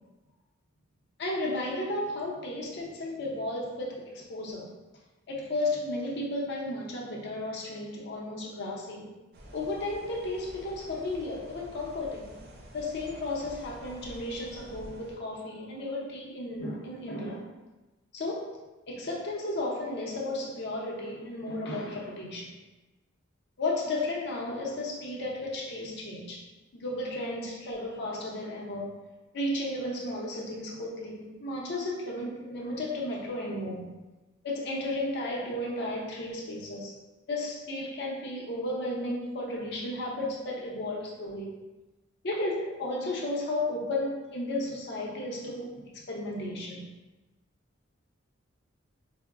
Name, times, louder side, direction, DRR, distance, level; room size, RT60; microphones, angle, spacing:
voice 1, 1.2-4.7 5.3-9.1 9.5-12.4 12.7-17.5 18.1-18.6 18.9-22.5 23.6-26.4 26.7-29.1 29.3-33.9 34.4-36.9 37.3-41.6 42.2-46.8, left 1 dB, 55° left, -2 dB, 0.6 m, -34 dB
sound 1, 9.3-15.2, right 1 dB, 50° right, 0.5 m, -48 dB
4.4 x 2.0 x 2.3 m, 1.1 s
head